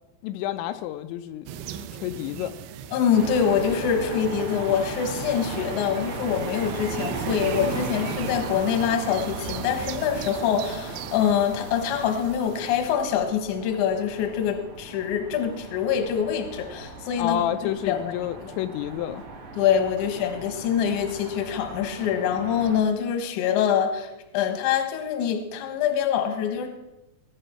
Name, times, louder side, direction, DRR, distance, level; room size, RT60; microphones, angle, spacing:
voice 1, 0.2-1.5 2.0-2.5 17.2-19.2, left 12 dB, 85° left, 9 dB, 2.8 m, -29 dB
sound 1, 1.5-12.9, right 8 dB, 85° right, 3.1 m, -37 dB
voice 2, 2.9-17.4 17.9-18.0 18.4-18.5 19.6-26.7, left 8 dB, 60° left, 6 dB, 2.2 m, -25 dB
sound 2, 3.1-22.8, right 2 dB, 65° right, 1.3 m, -38 dB
19.0 x 9.9 x 4.5 m, 0.97 s
omnidirectional pair, 5.3 m